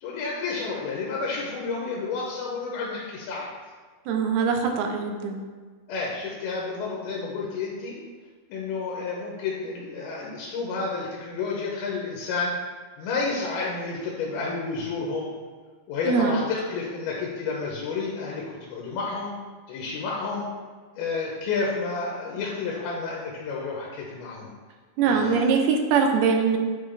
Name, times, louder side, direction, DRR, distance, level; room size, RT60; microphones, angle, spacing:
voice 1, 0.0-3.5 5.9-8.0 8.5-12.5 13.0-15.3 15.9-19.3 19.7-20.5 21.0-24.5 25.1-25.5, left 4 dB, 90° left, -3 dB, 2.7 m, -30 dB
voice 2, 4.1-5.4 16.0-16.4 25.0-26.6, right 5 dB, 90° right, 3 dB, 2.6 m, -22 dB
7.8 x 3.8 x 3.3 m, 1.5 s
omnidirectional pair, 4.4 m